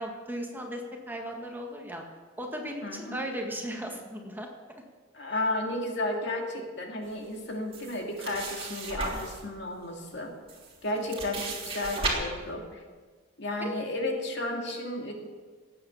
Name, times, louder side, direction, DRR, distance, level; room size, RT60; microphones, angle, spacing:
voice 1, 0.0-2.0 2.4-4.5 13.6-13.7, equal, 10° right, 1 dB, 1.8 m, -36 dB
voice 2, 2.8-3.2 5.1-10.3 10.8-12.6 13.4-15.1, left 1 dB, 65° left, 2 dB, 2.4 m, -33 dB
sound 1, 7.7-9.4 10.1-10.2 10.5-12.1, right 3 dB, 30° right, 3.3 m, -35 dB
19.0 x 8.6 x 7.2 m, 1.4 s
head